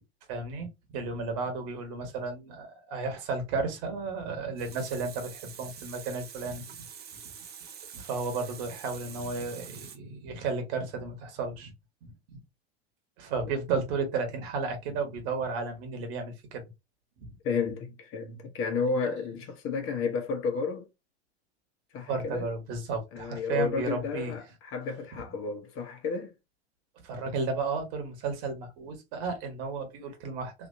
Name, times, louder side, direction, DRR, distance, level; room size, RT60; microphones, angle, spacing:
voice 1, 0.3-6.8 7.9-11.7 13.2-16.6 17.2-17.3 22.1-24.3 27.0-30.7, right 4 dB, 60° right, 1.6 m, -33 dB
Water tap faucet, 4.3-10.0, right 7 dB, 30° right, 0.9 m, -46 dB
voice 2, 17.4-20.9 21.9-22.5 23.1-26.3, left 5 dB, 45° left, 1.1 m, -32 dB
3.4 x 2.8 x 2.6 m
hypercardioid pair, 90°, 32 cm